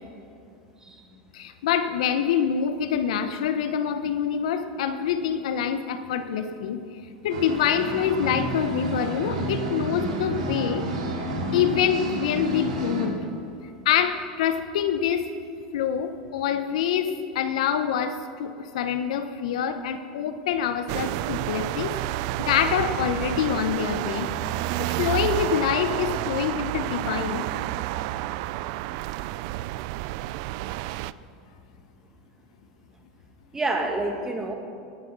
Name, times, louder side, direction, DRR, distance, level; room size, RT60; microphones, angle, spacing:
voice 1, 0.8-1.2 33.5-34.5, right 2 dB, 15° right, 3 dB, 2.2 m, -28 dB
voice 2, 1.3-6.8 7.2-10.8 11.5-13.2 13.8-15.3 15.7-21.9 22.5-24.3 24.8-27.4, left 8 dB, 75° left, 9 dB, 1.0 m, -26 dB
sound 1, 7.3-13.1, right 1 dB, 80° right, 2.5 m, -30 dB
sound 2, 20.9-31.1, right 16 dB, 65° right, 0.4 m, -30 dB
18.5 x 9.6 x 6.2 m, 2.4 s
hypercardioid pair, 100°, 4 cm